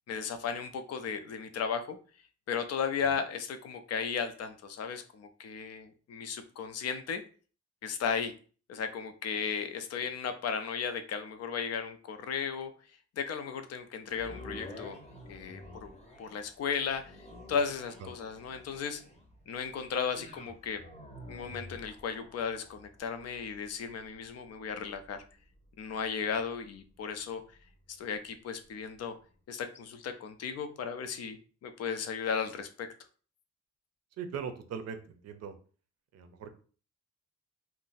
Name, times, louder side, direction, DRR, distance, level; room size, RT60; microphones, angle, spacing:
voice 1, 0.1-2.0 2.5-7.2 7.8-8.3 8.7-12.7 13.2-15.0 15.3-15.9 16.2-17.2 17.5-19.0 19.5-20.8 21.3-25.2 25.8-27.4 27.9-29.2 29.5-32.9, left 6 dB, 60° left, 8 dB, 0.5 m, -35 dB
sound 1, 14.1-28.3 28.8-28.9, left 1 dB, 25° left, 0.7 m, -51 dB
voice 2, 34.2-35.5 36.1-36.5, right 7 dB, 60° right, 8 dB, 0.5 m, -40 dB
2.5 x 2.1 x 3.9 m, 0.40 s
wide cardioid pair, 140°, 29 cm